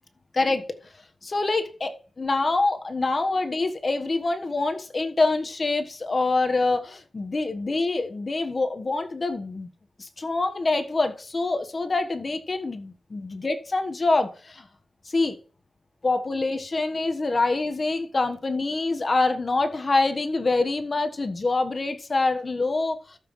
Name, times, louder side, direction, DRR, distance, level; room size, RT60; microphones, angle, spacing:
voice 1, 0.3-0.7 1.2-9.7 10.0-14.7 15.0-15.4 16.0-23.2, left 3 dB, 40° left, 1.3 m, -25 dB
13.5 x 7.4 x 3.2 m
wide cardioid pair, 100°, 0 cm